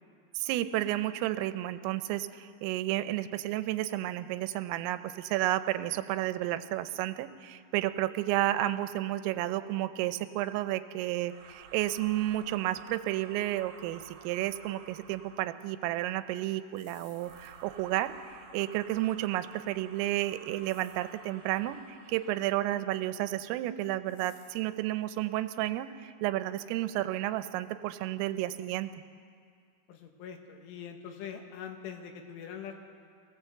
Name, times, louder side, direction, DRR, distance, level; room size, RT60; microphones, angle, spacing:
voice 1, 0.4-28.9, right 14 dB, 85° right, 11 dB, 3.3 m, -32 dB
sound 1, 11.2-15.7 17.1-22.6, right 7 dB, 55° right, 3.7 m, -53 dB
sound 2, 16.7-17.8 20.6-21.2 24.1-24.8, left 5 dB, 60° left, 3.7 m, -60 dB
voice 2, 29.9-32.7, left 8 dB, 75° left, 4 dB, 3.9 m, -43 dB
23.5 x 17.5 x 7.8 m, 2.2 s
omnidirectional pair, 5.8 m